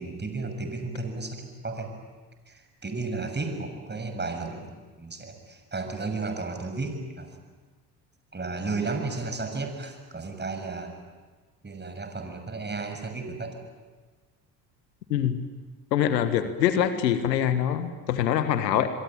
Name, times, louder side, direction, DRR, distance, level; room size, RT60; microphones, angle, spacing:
voice 1, 0.0-1.9 2.5-7.4 8.3-11.0 11.6-13.6, right 3 dB, 20° right, 5 dB, 6.8 m, -33 dB
voice 2, 15.1-15.4 15.9-18.9, left 10 dB, 80° left, 10 dB, 1.7 m, -24 dB
26.5 x 23.0 x 9.0 m, 1.4 s
figure-of-eight pair, 55°, 50 cm